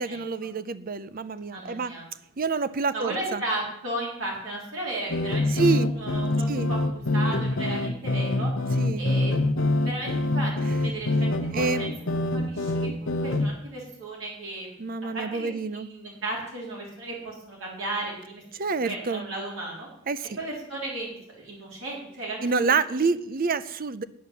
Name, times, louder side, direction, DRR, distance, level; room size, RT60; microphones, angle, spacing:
voice 1, 0.0-1.9 2.4-3.4 5.5-5.9 6.5-6.7 8.8-9.0 11.5-11.9 14.8-15.9 18.6-19.3 20.1-20.4 22.4-24.0, right 4 dB, 40° right, 15 dB, 0.5 m, -27 dB
voice 2, 1.5-2.1 2.9-6.8 7.1-8.5 9.0-9.3 9.8-10.5 10.8-11.9 12.3-14.9 15.1-18.4 18.7-19.9 20.4-23.1, right 2 dB, 65° right, -3 dB, 3.8 m, -35 dB
sound 1, 5.1-13.5, left 2 dB, 65° left, 1.1 m, -25 dB
9.4 x 9.2 x 7.1 m, 0.75 s
head